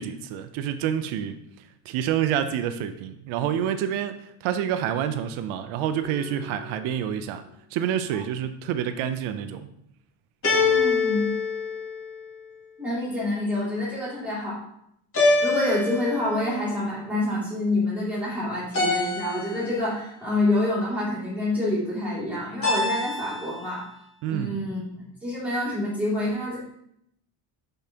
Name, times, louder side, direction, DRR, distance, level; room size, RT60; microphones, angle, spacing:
voice 1, 0.0-1.3 1.9-4.2 4.4-7.4 7.7-9.7 24.2-24.5, right 9 dB, 80° right, 10 dB, 0.6 m, -28 dB
sound 1, 6.0-6.7 10.4-12.4 15.1-16.5 18.7-19.9 22.6-23.6, left 3 dB, 25° left, 2.1 m, -25 dB
voice 2, 10.5-11.3 12.8-14.6 15.4-23.8 24.3-24.8 25.2-26.6, left 1 dB, 5° right, -10 dB, 2.5 m, -27 dB
6.9 x 5.5 x 2.8 m, 0.75 s
cardioid pair, 145°, 48 cm